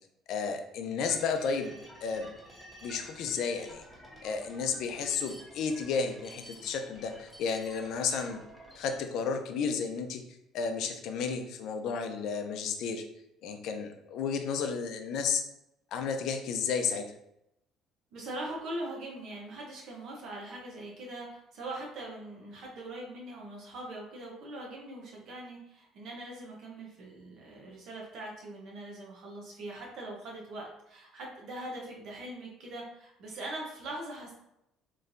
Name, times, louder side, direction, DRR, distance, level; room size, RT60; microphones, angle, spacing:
voice 1, 0.3-1.7 2.0-2.3 2.8-3.8 4.2-8.4 8.8-10.2 10.5-13.0 13.4-15.4 15.9-17.1, left 5 dB, 60° left, 6 dB, 0.5 m, -32 dB
sound 1, 1.0-9.0, equal, ahead, 0.9 m, -51 dB
voice 2, 18.1-34.3, right 1 dB, 55° right, -2 dB, 0.8 m, -42 dB
4.3 x 3.1 x 2.6 m, 0.82 s
cardioid pair, 160°, 0 cm